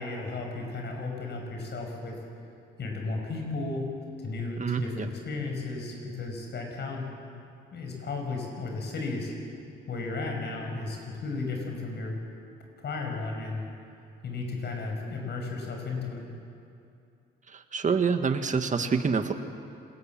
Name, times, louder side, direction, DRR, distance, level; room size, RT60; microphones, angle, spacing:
voice 1, 0.0-2.2 2.8-3.9 4.2-7.1 7.7-9.3 9.9-12.2 12.8-13.7 14.2-16.3, left 3 dB, 60° left, 1 dB, 6.5 m, -34 dB
voice 2, 4.6-5.1 17.5-19.3, right 5 dB, 40° right, 7 dB, 1.7 m, -27 dB
26.0 x 19.0 x 7.6 m, 2.6 s
cardioid pair, 90°, 20 cm